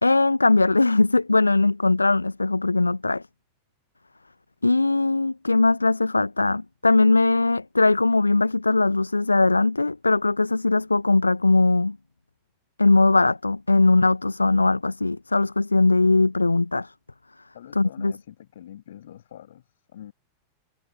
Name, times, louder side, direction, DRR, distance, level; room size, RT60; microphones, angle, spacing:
voice 1, 0.0-3.2 4.6-12.0 12.8-16.9 17.8-18.1, left 3 dB, 80° left, 1.0 m, -20 dB
voice 2, 17.5-20.1, left 11 dB, 60° left, 6.0 m, -45 dB
figure-of-eight pair, 90°, 0 cm